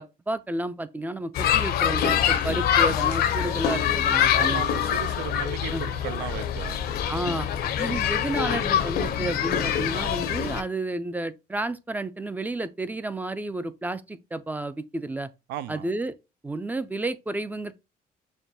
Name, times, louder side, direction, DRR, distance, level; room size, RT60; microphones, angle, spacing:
voice 1, 0.0-4.6 5.7-5.9 7.1-7.5 7.8-15.3 15.7-16.2 16.4-17.7, right 2 dB, 10° right, 0.3 m, -31 dB
sound 1, 1.3-10.6, left 9 dB, 65° left, 0.6 m, -25 dB
voice 2, 4.3-6.8 15.5-15.9, right 13 dB, 90° right, 0.4 m, -36 dB
6.3 x 2.1 x 2.7 m
cardioid pair, 110°, 17 cm